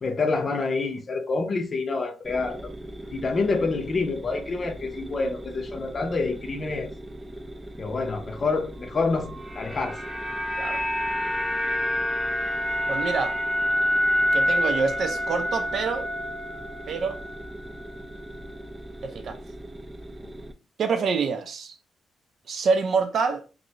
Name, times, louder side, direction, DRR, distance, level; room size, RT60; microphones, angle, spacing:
voice 1, 0.0-2.7 3.1-6.9 7.8-10.0 20.2-20.3, left 3 dB, 40° left, 0.6 m, -27 dB
sound 1, 2.2-20.5, right 1 dB, 15° right, 0.4 m, -41 dB
sound 2, 9.2-17.5 17.8-17.9, equal, ahead, 1.1 m, -27 dB
voice 2, 12.9-13.4 14.3-16.1 16.9-17.2 19.0-19.4 20.8-21.8 22.5-23.4, right 5 dB, 60° right, 0.6 m, -26 dB
2.8 x 2.6 x 3.0 m
cardioid pair, 125°, 0 cm